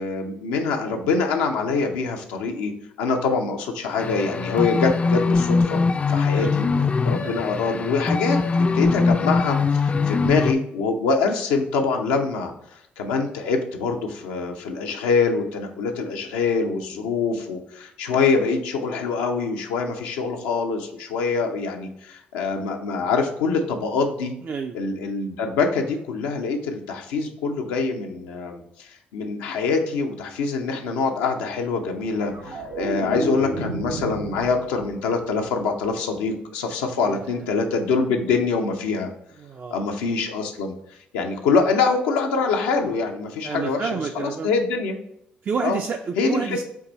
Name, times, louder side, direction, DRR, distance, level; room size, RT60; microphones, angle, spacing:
voice 1, 0.0-2.7 3.0-5.8 6.1-6.7 7.0-12.5 13.0-24.3 24.7-39.1 39.7-40.7 41.1-45.0 45.6-45.8 46.2-46.6, left 4 dB, 85° left, 3 dB, 0.6 m, -24 dB
sound 1, 4.0-10.5, left 4 dB, 30° left, 0.3 m, -22 dB
voice 2, 24.4-24.8 37.1-37.2 39.4-39.9 43.4-44.5 45.4-46.6, right 5 dB, 45° right, 4 dB, 0.4 m, -29 dB
sound 2, 31.9-35.1 35.5-35.8, right 2 dB, 85° right, 0.9 m, -32 dB
4.7 x 2.6 x 3.9 m, 0.79 s
hypercardioid pair, 55°, 4 cm